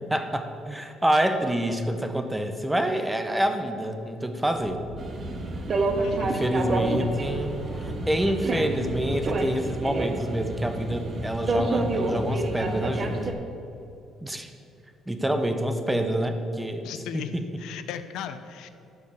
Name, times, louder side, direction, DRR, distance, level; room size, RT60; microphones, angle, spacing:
voice 1, 0.1-4.8 6.2-7.5 7.8-13.2 14.2-14.5 15.1-16.9 17.1-17.4, right 1 dB, 5° right, 7 dB, 0.7 m, -27 dB
sound 1, 4.4-9.6, left 1 dB, 30° left, 2.4 m, -41 dB
sound 2, 5.0-13.3, right 2 dB, 35° right, 0.9 m, -29 dB
voice 2, 6.0-6.3 16.8-17.3 17.6-18.7, left 9 dB, 80° left, 11 dB, 0.5 m, -36 dB
13.0 x 4.7 x 7.1 m, 2.6 s
cardioid pair, 150°, 0 cm